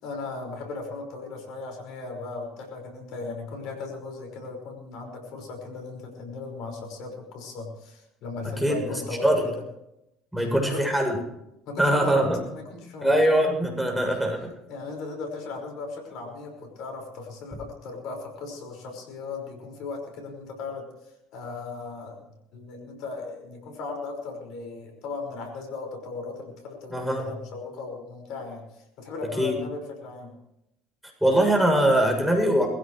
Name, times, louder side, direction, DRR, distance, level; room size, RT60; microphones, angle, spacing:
voice 1, 0.0-9.6 10.4-10.9 11.7-12.2 12.5-13.1 13.6-14.3 14.7-22.2 22.5-30.3, left 3 dB, 65° left, 3 dB, 5.4 m, -37 dB
voice 2, 10.3-11.1 11.8-12.4 13.0-14.5 26.9-27.3 29.4-29.6 31.2-32.7, right 1 dB, ahead, 1 dB, 7.2 m, -22 dB
22.0 x 15.5 x 3.2 m, 0.84 s
hypercardioid pair, 70°, 0 cm